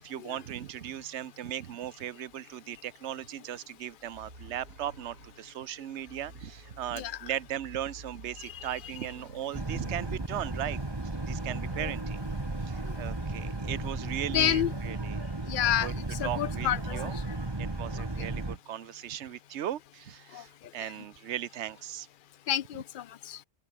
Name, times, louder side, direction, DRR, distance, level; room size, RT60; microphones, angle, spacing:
voice 1, 0.0-10.8 11.2-12.2 12.6-15.2 15.8-15.9 16.2-17.1 17.6-22.1, right 11 dB, 60° right, 1.1 m, -37 dB
sound 1, 4.0-15.0, right 2 dB, 80° right, 7.6 m, -51 dB
Boat Water vehicle, 9.5-18.6, right 2 dB, 20° right, 1.6 m, -34 dB
voice 2, 14.3-14.7 15.5-15.9 16.2-17.0 20.3-20.4 22.5-23.4, left 11 dB, 60° left, 0.5 m, -28 dB
open air
omnidirectional pair, 1.4 m